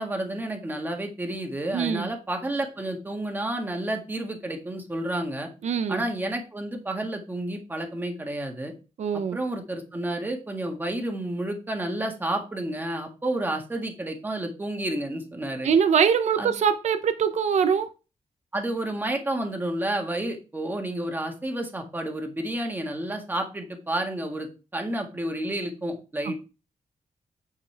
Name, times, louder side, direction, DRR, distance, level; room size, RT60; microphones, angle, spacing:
voice 1, 0.0-5.5 5.9-8.7 9.3-15.7 16.4-16.5 18.5-26.4, right 1 dB, 15° right, 1.7 m, -30 dB
voice 2, 1.7-2.1 5.6-6.0 9.0-9.4 15.6-17.9, right 7 dB, 65° right, 0.7 m, -23 dB
9.2 x 6.7 x 3.4 m
wide cardioid pair, 160°, 13 cm